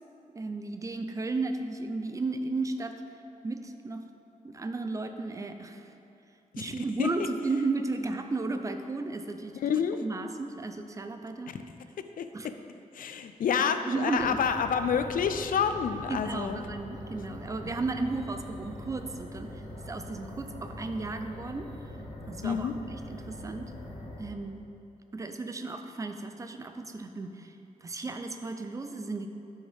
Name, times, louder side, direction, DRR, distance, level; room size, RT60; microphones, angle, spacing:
voice 1, 0.3-2.9 3.4-4.0 4.4-5.9 6.6-9.6 10.0-11.6 12.3-12.5 13.5-14.4 16.1-21.7 22.3-22.7 23.1-23.7 24.2-24.7 25.1-27.5 27.8-29.3, right 3 dB, 25° right, 7 dB, 0.4 m, -34 dB
voice 2, 6.5-7.3 9.5-10.0 11.5-11.6 12.2-12.5 12.9-16.6 22.4-22.7, left 7 dB, 80° left, 9 dB, 0.5 m, -29 dB
sound 1, 14.2-24.2, left 1 dB, 55° left, 1.5 m, -43 dB
10.5 x 6.3 x 3.4 m, 2.7 s
wide cardioid pair, 150°, 14 cm